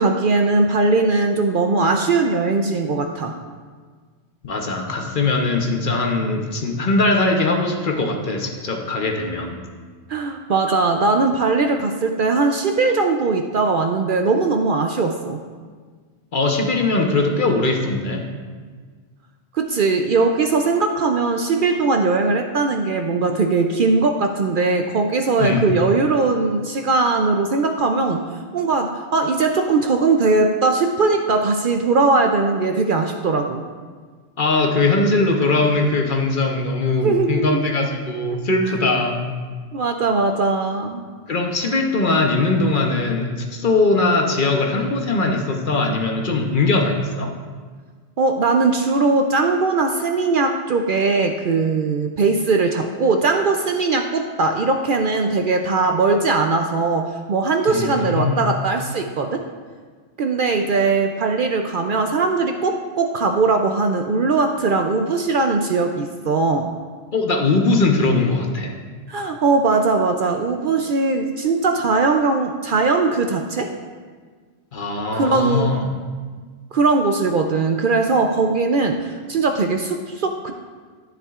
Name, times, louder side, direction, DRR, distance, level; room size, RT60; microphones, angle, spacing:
voice 1, 0.0-3.4 10.1-15.4 19.5-28.2 28.5-33.7 37.0-37.6 39.7-41.0 48.2-59.4 60.2-66.7 69.1-73.7 75.1-75.7 76.7-80.5, right 3 dB, 60° right, 5 dB, 0.6 m, -20 dB
voice 2, 4.4-9.6 16.3-18.3 25.4-25.7 34.4-39.2 41.3-47.3 57.7-58.4 67.1-68.7 74.7-75.9, left 3 dB, 50° left, 2 dB, 1.0 m, -20 dB
11.0 x 10.0 x 2.4 m, 1.5 s
omnidirectional pair, 1.2 m